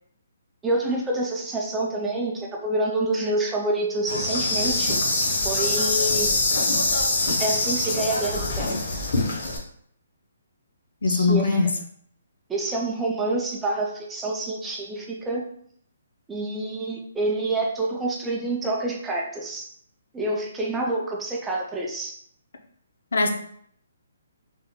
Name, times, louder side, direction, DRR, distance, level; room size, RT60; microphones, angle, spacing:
voice 1, 0.6-5.0 5.4-6.3 7.4-8.7 11.1-11.7 12.5-15.4 16.3-19.7 20.1-22.2, right 2 dB, 10° right, -1 dB, 0.4 m, -27 dB
Insect, 4.1-9.6, left 2 dB, 45° left, 0.7 m, -24 dB
voice 2, 11.0-11.7 23.1-23.3, left 4 dB, 80° left, 4 dB, 0.5 m, -21 dB
3.5 x 2.7 x 2.2 m, 0.64 s
hypercardioid pair, 165°, 0 cm